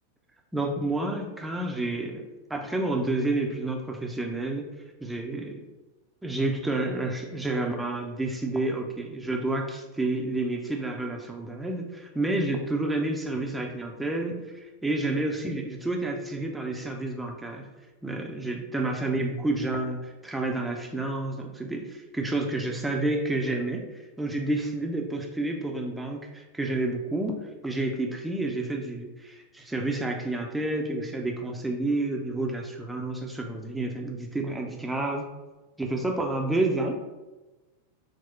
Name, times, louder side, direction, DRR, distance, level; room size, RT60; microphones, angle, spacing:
voice 1, 0.5-2.2 2.5-4.7 5.0-5.6 6.2-17.7 18.0-27.4 27.6-35.3 35.8-37.0, right 2 dB, 5° right, 1 dB, 0.5 m, -29 dB
4.4 x 2.1 x 4.4 m, 1.1 s
figure-of-eight pair, 90°, 0 cm